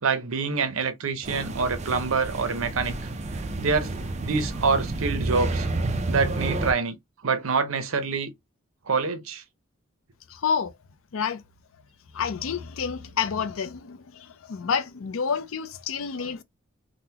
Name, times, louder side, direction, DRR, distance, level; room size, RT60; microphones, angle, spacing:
voice 1, 0.0-2.9 3.6-3.9 4.2-5.7 6.1-7.0 7.2-8.3 8.9-9.4, right 4 dB, 75° right, 0.7 m, -26 dB
sound 1, 1.2-6.7, right 2 dB, 30° right, 0.4 m, -30 dB
voice 2, 10.3-10.7 11.1-11.4 12.1-16.4, left 6 dB, 70° left, 0.5 m, -29 dB
3.8 x 2.1 x 2.8 m
head